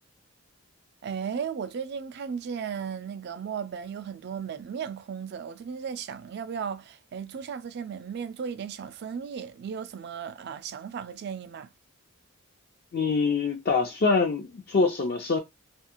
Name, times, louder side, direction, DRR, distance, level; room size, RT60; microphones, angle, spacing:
voice 1, 1.0-11.7, right 7 dB, 50° right, 0.3 m, -35 dB
voice 2, 12.9-15.4, left 4 dB, 45° left, 0.4 m, -24 dB
2.4 x 2.4 x 2.8 m
head